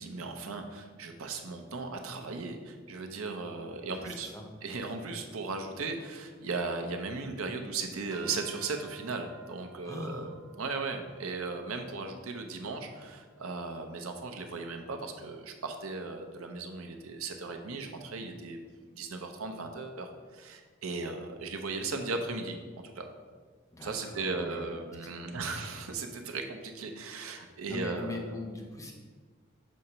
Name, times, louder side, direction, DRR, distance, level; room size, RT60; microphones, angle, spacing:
voice 1, 0.0-4.3 4.6-10.3 10.6-18.6 18.9-23.1 23.8-28.3, right 3 dB, 85° right, 5 dB, 0.7 m, -37 dB
voice 2, 3.9-4.5 9.8-10.3 23.7-24.7 25.0-25.1 27.7-28.9, left 2 dB, 15° left, 0 dB, 0.8 m, -41 dB
sound 1, 8.1-14.5, right 5 dB, 20° right, 0.7 m, -56 dB
6.3 x 2.9 x 5.5 m, 1.5 s
head